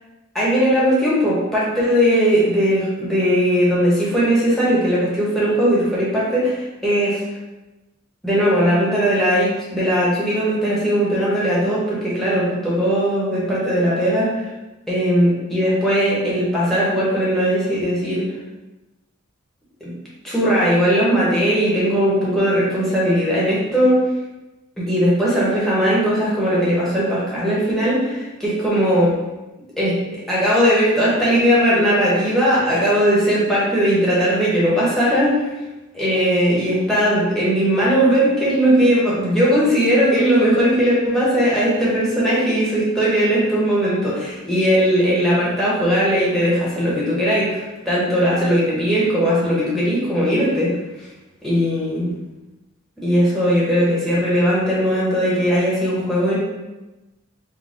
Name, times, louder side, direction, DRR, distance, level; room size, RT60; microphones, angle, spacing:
voice 1, 0.3-7.2 8.2-14.3 14.9-18.3 19.8-19.9 20.2-24.0 24.8-29.1 29.8-30.0 30.3-35.5 35.9-50.7 51.4-52.1 53.0-56.4, equal, ahead, -8 dB, 1.0 m, -18 dB
3.8 x 2.2 x 3.8 m, 1.1 s
head